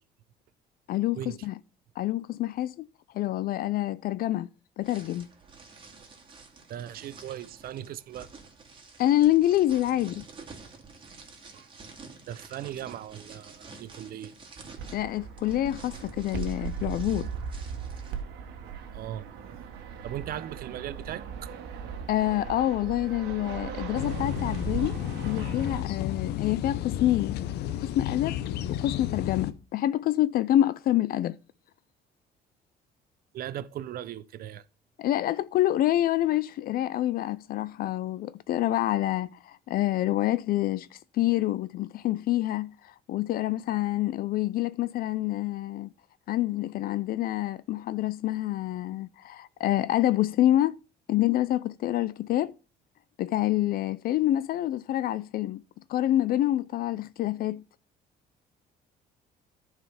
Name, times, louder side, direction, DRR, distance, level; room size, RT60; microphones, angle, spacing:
voice 1, 0.9-1.5 2.0-2.9 3.1-4.5 4.8-5.3 9.0-10.2 14.9-17.3 22.1-27.4 27.8-28.4 28.7-31.4 35.0-45.9 46.3-50.8 51.1-52.5 53.2-55.6 55.9-57.6, left 14 dB, 60° left, 0.4 m, -27 dB
sound 1, 4.8-18.2, right 4 dB, 30° right, 2.4 m, -49 dB
voice 2, 6.7-8.3 11.5-11.7 12.3-14.3 18.9-19.2 20.0-21.5 33.3-34.6, right 11 dB, 60° right, 0.7 m, -38 dB
Fixed-wing aircraft airplane, 14.8-25.8, right 6 dB, 85° right, 1.4 m, -38 dB
sound 2, 23.9-29.5, left 11 dB, 75° left, 0.9 m, -32 dB
10.5 x 4.8 x 5.6 m
cardioid pair, 110°, 17 cm